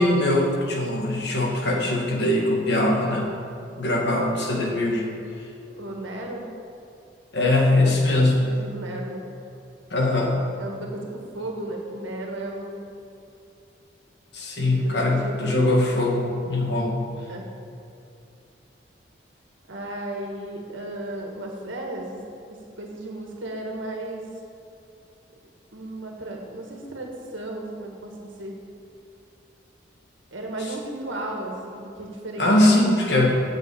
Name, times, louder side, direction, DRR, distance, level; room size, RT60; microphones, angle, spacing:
voice 1, 0.0-3.3 3.8-5.0 7.3-8.5 9.9-10.4 14.3-17.0 32.4-33.3, left 1 dB, 60° left, 0 dB, 1.9 m, -21 dB
voice 2, 5.6-6.5 8.3-9.2 10.6-12.9 14.7-15.5 17.3-17.4 19.7-22.2 22.5-24.2 25.7-28.6 30.3-33.3, right 1 dB, 85° right, 1 dB, 1.6 m, -34 dB
8.0 x 7.8 x 8.6 m, 2.7 s
head